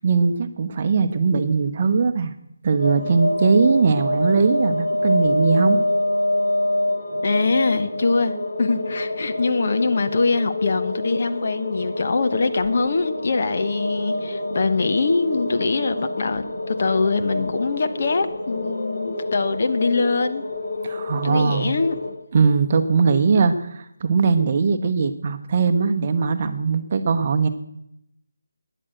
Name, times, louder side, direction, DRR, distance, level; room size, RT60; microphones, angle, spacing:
voice 1, 0.0-2.3 2.6-5.8 20.8-21.7 22.3-27.5, right 5 dB, 30° right, 7 dB, 1.1 m, -20 dB
sound 1, 2.8-22.1, left 1 dB, 70° left, 4.6 m, -26 dB
voice 2, 7.2-20.4 21.2-22.0, left 4 dB, 45° left, 9 dB, 1.0 m, -23 dB
13.0 x 10.0 x 7.8 m, 0.79 s
figure-of-eight pair, 170°, 0 cm